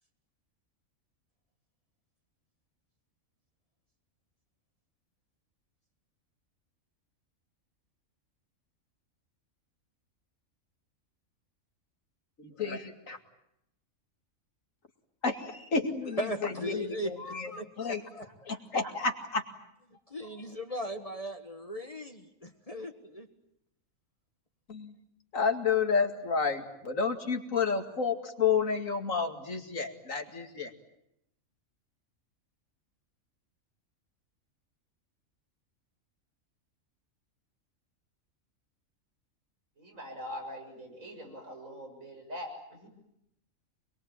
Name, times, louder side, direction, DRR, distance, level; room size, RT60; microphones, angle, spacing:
voice 1, 12.4-13.2 15.2-18.0 18.5-19.4 24.7-24.9 25.3-30.7, left 5 dB, 70° left, 5 dB, 2.7 m, -30 dB
voice 2, 16.1-18.3 20.1-23.3, equal, 25° left, 6 dB, 1.6 m, -38 dB
voice 3, 39.8-42.9, equal, 75° right, 1 dB, 7.5 m, -43 dB
26.0 x 22.0 x 8.9 m, 0.80 s
omnidirectional pair, 1.4 m